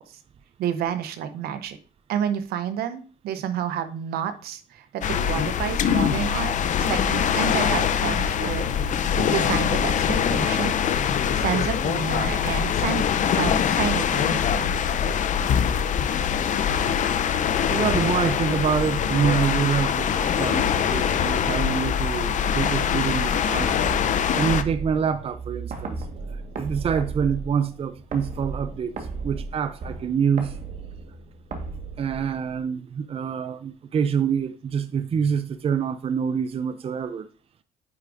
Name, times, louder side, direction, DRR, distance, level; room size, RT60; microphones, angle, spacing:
voice 1, 0.6-1.8 2.1-6.5 6.9-10.9 11.3-14.8, right 9 dB, 75° right, 0.9 m, -30 dB
sound 1, 5.0-24.6, left 8 dB, 50° left, 0.6 m, -23 dB
voice 2, 17.7-23.8 24.3-26.0 26.6-29.0 29.2-30.6 32.0-37.3, right 7 dB, 40° right, 0.5 m, -26 dB
sound 2, 23.6-32.6, right 4 dB, 55° right, 1.5 m, -35 dB
9.7 x 4.7 x 2.6 m
supercardioid pair, 75°, 16 cm